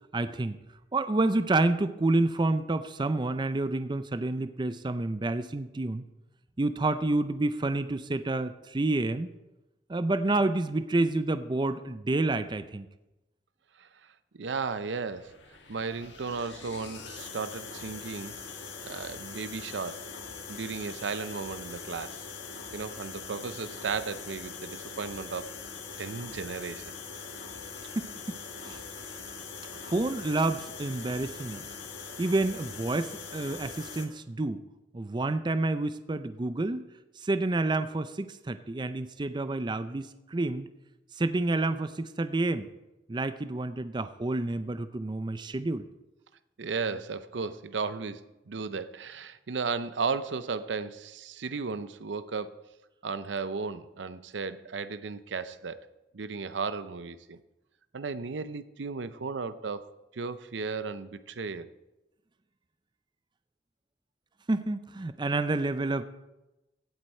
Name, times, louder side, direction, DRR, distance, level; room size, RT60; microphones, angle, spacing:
voice 1, 0.1-0.6 0.9-6.0 6.6-9.3 9.9-12.9 28.0-28.4 28.6-28.8 29.9-31.6 32.2-34.6 34.9-36.8 37.2-40.7 41.2-42.7 43.1-45.9 64.5-66.0, right 2 dB, 25° right, 0.5 m, -29 dB
voice 2, 14.3-15.4 15.7-20.0 20.5-22.2 22.7-25.6 26.0-26.8 46.6-52.6 53.0-55.9 56.1-57.4 57.9-61.7, right 4 dB, 85° right, 0.6 m, -35 dB
sound 1, 15.1-34.1, left 5 dB, 90° left, 1.5 m, -42 dB
16.0 x 7.9 x 4.4 m
head